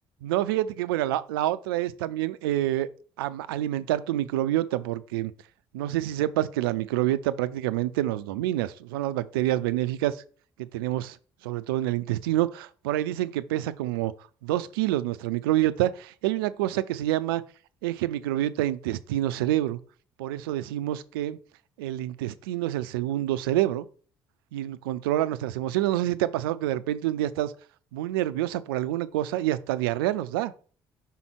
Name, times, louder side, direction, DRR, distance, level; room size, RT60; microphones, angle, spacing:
voice 1, 0.2-2.9 3.2-5.3 5.7-10.2 10.6-11.2 11.4-14.1 14.4-17.4 17.8-19.8 20.2-21.4 21.8-23.9 24.5-27.5 27.9-30.5, right 14 dB, 85° right, 0.4 m, -27 dB
5.6 x 3.8 x 4.4 m
hypercardioid pair, 50°, 12 cm